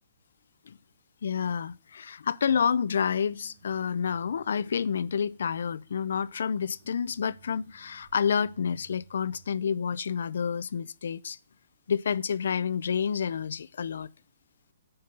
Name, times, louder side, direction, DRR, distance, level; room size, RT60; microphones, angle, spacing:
voice 1, 1.2-11.4 11.9-14.1, left 7 dB, 70° left, 0.4 m, -29 dB
sound 1, 3.1-9.5, right 6 dB, 45° right, 3.1 m, -59 dB
7.8 x 5.3 x 6.9 m
hypercardioid pair, 170°, 0 cm